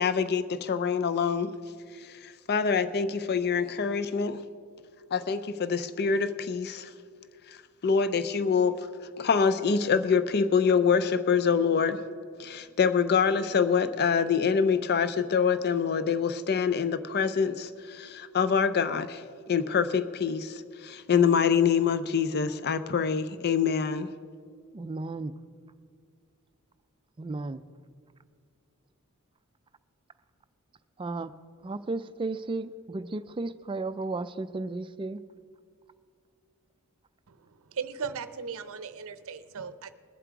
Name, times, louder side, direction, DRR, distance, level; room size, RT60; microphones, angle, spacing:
voice 1, 0.0-1.5 2.2-4.4 5.1-6.9 7.8-8.8 9.2-12.0 12.4-19.2 19.5-24.1, left 6 dB, 45° left, 12 dB, 0.5 m, -25 dB
voice 2, 24.7-25.4 27.2-27.6 31.0-31.3 31.6-35.2, right 3 dB, 25° right, 13 dB, 0.4 m, -34 dB
voice 3, 37.8-39.9, right 6 dB, 65° right, 12 dB, 0.6 m, -37 dB
21.0 x 7.5 x 4.7 m, 2.1 s
head